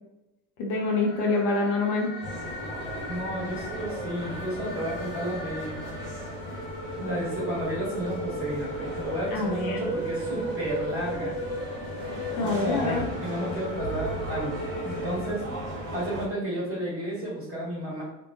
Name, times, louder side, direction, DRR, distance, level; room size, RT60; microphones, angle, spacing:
voice 1, 0.6-2.1 9.3-9.8 12.4-13.0, left 3 dB, 55° left, -2 dB, 0.7 m, -26 dB
sound 1, 0.7-16.0, equal, 25° left, 0.8 m, -36 dB
sound 2, 2.2-16.3, right 1 dB, 75° right, 1.0 m, -37 dB
voice 2, 3.1-5.8 7.0-11.4 12.4-15.5 15.9-18.0, equal, 25° right, -6 dB, 1.4 m, -32 dB
2.6 x 2.1 x 2.7 m, 0.96 s
hypercardioid pair, 65°, 49 cm